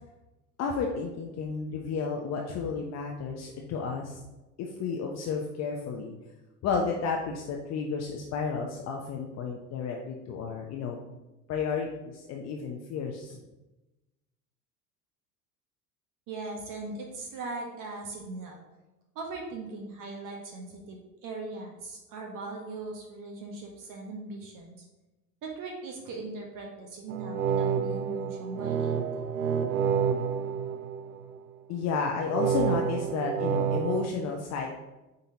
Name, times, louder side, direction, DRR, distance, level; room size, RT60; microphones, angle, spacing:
voice 1, 0.6-4.2 4.6-6.1 6.6-11.0 11.5-13.4 31.7-34.7, left 5 dB, 35° left, 1 dB, 0.8 m, -32 dB
voice 2, 16.3-18.6 19.1-24.9 25.4-29.0, right 3 dB, 40° right, 0 dB, 1.3 m, -39 dB
sound 1, 27.1-31.4 32.3-34.1, right 7 dB, 70° right, 0.6 m, -29 dB
8.7 x 4.0 x 2.9 m, 1.0 s
figure-of-eight pair, 70°, 46 cm